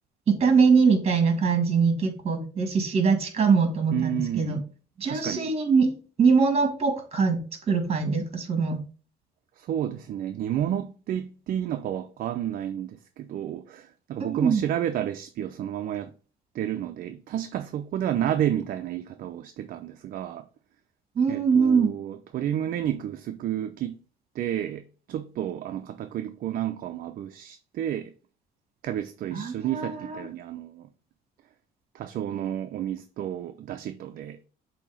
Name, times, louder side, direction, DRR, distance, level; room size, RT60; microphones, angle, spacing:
voice 1, 0.3-4.6 5.0-8.8 14.2-14.6 21.1-21.9 29.3-30.2, right 5 dB, 35° right, 1.6 m, -23 dB
voice 2, 3.9-4.6 5.0-5.5 9.6-16.1 16.5-20.4 21.3-24.0 24.3-28.1 28.8-30.9 31.9-34.4, right 11 dB, 55° right, 0.5 m, -31 dB
6.9 x 2.8 x 4.9 m
cardioid pair, 110°, 17 cm